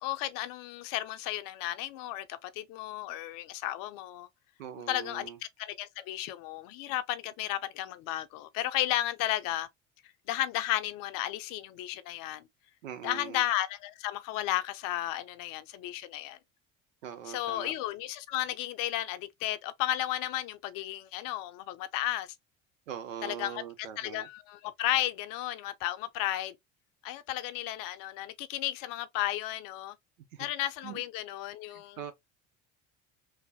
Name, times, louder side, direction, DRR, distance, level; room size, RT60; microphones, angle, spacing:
voice 1, 0.0-4.3 4.9-5.3 5.6-9.7 10.3-12.4 13.0-16.4 17.3-22.3 23.2-23.6 24.0-26.5 27.0-29.9 30.4-32.0, left 14 dB, 60° left, 0.5 m, -33 dB
voice 2, 4.6-5.4 12.8-13.4 17.0-17.7 22.9-24.3 30.3-30.5 30.8-31.0 31.7-32.1, right 9 dB, 90° right, 0.7 m, -42 dB
3.2 x 2.1 x 2.7 m
hypercardioid pair, 70°, 38 cm